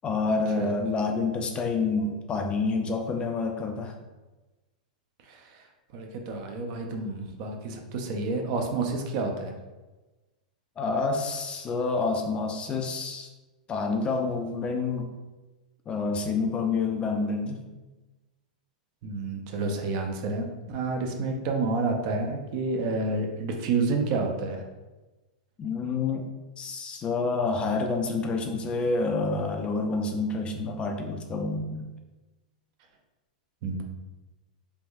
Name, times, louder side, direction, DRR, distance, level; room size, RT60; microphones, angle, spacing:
voice 1, 0.0-4.0 10.8-13.3 13.7-15.1 15.9-17.6 25.6-26.3 26.6-31.9, left 3 dB, 25° left, 3 dB, 0.4 m, -28 dB
voice 2, 5.3-5.6 5.9-9.5 19.0-24.6 33.6-33.8, right 3 dB, 50° right, 3 dB, 0.5 m, -29 dB
3.3 x 2.6 x 2.3 m, 1.1 s
hypercardioid pair, 120°, 4 cm